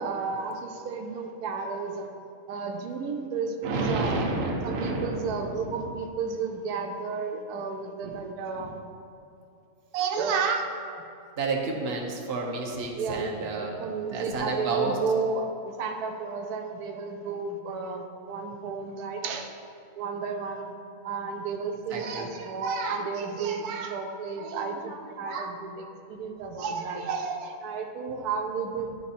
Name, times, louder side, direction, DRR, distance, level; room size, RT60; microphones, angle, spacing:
voice 1, 0.0-2.1 2.5-4.2 4.6-8.8 9.9-10.7 13.0-19.5 20.0-20.7 21.0-28.9, right 5 dB, 90° right, 4 dB, 1.2 m, -32 dB
voice 2, 3.6-5.2 8.6-8.7 11.4-15.0 21.9-22.3, right 3 dB, 50° right, -1 dB, 1.0 m, -30 dB
10.5 x 3.9 x 4.2 m, 2.6 s
omnidirectional pair, 1.6 m